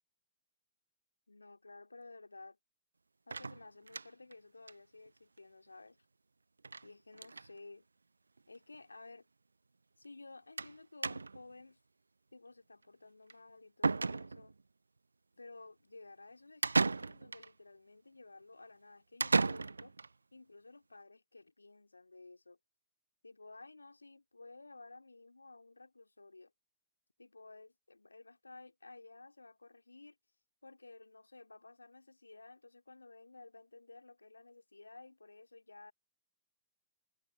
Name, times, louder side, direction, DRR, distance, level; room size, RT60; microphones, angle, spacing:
voice 1, 1.3-2.6 3.3-6.1 6.8-7.8 8.5-9.3 10.0-11.8 12.3-14.5 15.4-20.0 20.3-22.6 23.2-26.5 27.2-30.2 30.6-35.9, left 3 dB, 80° left, 2.8 m, -55 dB
sound 1, 3.3-4.3 4.7-4.8 5.1-5.2 5.4-5.5 6.6-6.9 7.1-7.5 8.4-8.5 8.7-8.8 10.6-10.8 11.0-11.5 13.3-13.4 13.8-14.6 16.6-17.5 19.2-20.1, right 3 dB, 75° right, 0.4 m, -34 dB
figure-of-eight pair, 110°, 0 cm